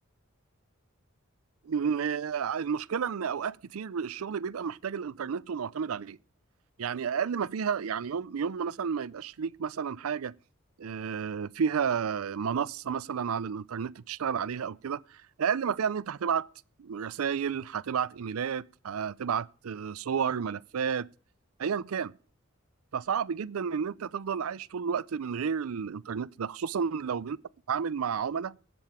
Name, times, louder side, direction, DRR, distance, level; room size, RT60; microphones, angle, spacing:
voice 1, 1.7-6.2 6.8-10.3 10.8-16.5 16.8-21.1 21.6-22.1 22.9-27.4 27.7-28.6, right 7 dB, 85° right, 0.5 m, -31 dB
17.5 x 7.6 x 4.9 m
head